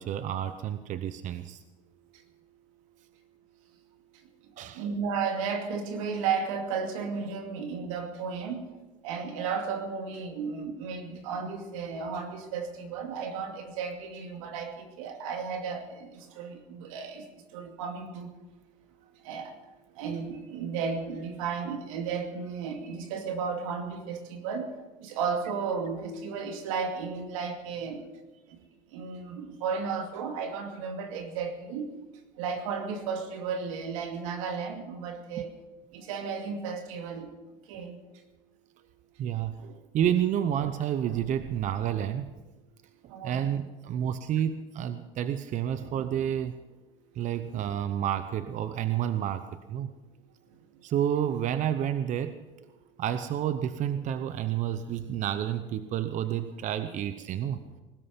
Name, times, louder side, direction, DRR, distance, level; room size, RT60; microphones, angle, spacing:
voice 1, 0.0-1.6 4.6-4.8 35.4-35.5 39.2-42.3 43.0-46.6 47.1-49.9 50.8-52.4 53.0-57.6, right 10 dB, 45° right, 0.9 m, -30 dB
voice 2, 4.7-8.6 9.0-17.3 17.5-18.3 19.2-19.5 20.0-24.7 25.0-28.0 28.9-31.9 32.4-35.5 35.9-37.3 37.7-38.0 43.1-43.5 54.5-54.8 57.5-57.6, right 5 dB, 85° right, 2.5 m, -34 dB
20.5 x 13.0 x 5.3 m
supercardioid pair, 105°, 17 cm